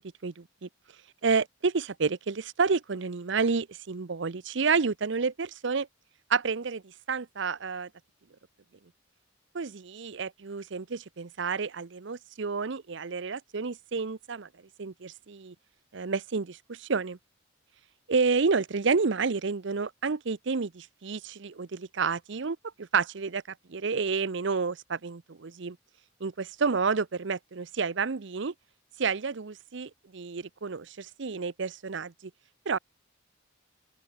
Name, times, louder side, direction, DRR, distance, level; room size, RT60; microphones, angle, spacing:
voice 1, 0.2-0.7 1.2-5.9 6.3-7.9 9.5-14.5 14.8-15.5 15.9-17.2 18.1-23.4 23.7-25.8 26.2-28.5 29.0-32.3 32.7-32.8, right 5 dB, 65° right, 0.7 m, -30 dB
open air
head